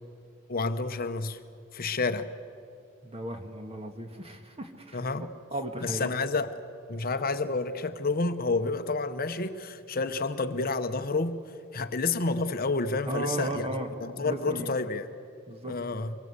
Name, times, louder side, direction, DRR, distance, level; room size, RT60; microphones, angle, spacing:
voice 1, 0.5-1.4 1.7-2.3 4.9-5.3 5.8-6.5 6.9-11.4 11.7-13.7 14.0-15.1 15.7-16.2, left 3 dB, 45° left, 9 dB, 0.9 m, -29 dB
voice 2, 3.0-5.0 5.5-6.3 13.1-13.9 14.2-14.8 15.5-15.8, right 1 dB, 30° right, 5 dB, 2.0 m, -35 dB
24.5 x 23.0 x 8.2 m, 2.4 s
head